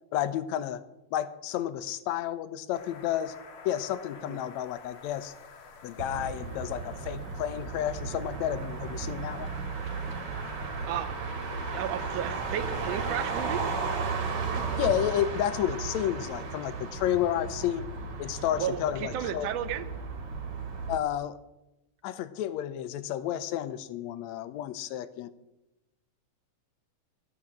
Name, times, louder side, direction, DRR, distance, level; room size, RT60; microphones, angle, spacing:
voice 1, 0.1-0.8 1.1-3.3 3.6-5.3 5.8-9.5 14.8-17.9 18.2-19.5 20.9-21.4 22.0-25.3, left 11 dB, 75° left, 13 dB, 1.8 m, -31 dB
sound 1, 2.7-14.9, left 5 dB, 55° left, 1.8 m, -51 dB
Motor vehicle (road), 6.0-21.0, right 4 dB, 50° right, 2.3 m, -35 dB
voice 2, 10.6-11.1 11.7-13.6 18.6-19.9, right 10 dB, 70° right, 11 dB, 1.6 m, -33 dB
14.0 x 6.0 x 8.8 m, 0.95 s
omnidirectional pair, 3.6 m